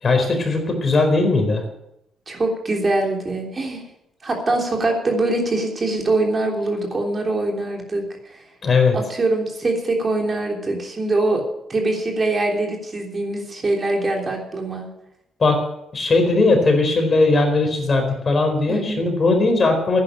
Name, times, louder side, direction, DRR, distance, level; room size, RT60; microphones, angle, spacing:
voice 1, 0.0-1.6 8.6-9.0 15.4-15.6 15.9-20.0, left 3 dB, 40° left, 3 dB, 4.5 m, -18 dB
voice 2, 2.3-3.8 4.2-8.4 8.9-11.4 11.7-14.9 18.7-19.0, right 2 dB, 35° right, 1 dB, 3.2 m, -23 dB
10.5 x 10.0 x 8.3 m, 0.82 s
cardioid pair, 90°, 0 cm